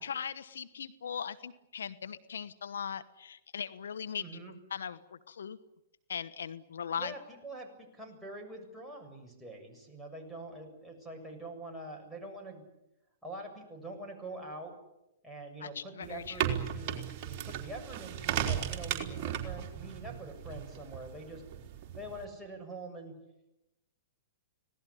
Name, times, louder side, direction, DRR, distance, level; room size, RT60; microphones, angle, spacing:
voice 1, 0.0-4.2 4.7-5.0 5.3-5.6 6.1-7.1 15.6-16.4, left 7 dB, 75° left, 14 dB, 1.1 m, -39 dB
voice 2, 4.2-4.5 7.0-12.6 13.2-14.8 15.2-21.4 22.0-23.2, right 2 dB, ahead, -1 dB, 7.2 m, -45 dB
sound 1, 16.0-22.2, right 9 dB, 40° right, 3.8 m, -36 dB
25.5 x 18.5 x 9.9 m, 0.92 s
hypercardioid pair, 120°, 0 cm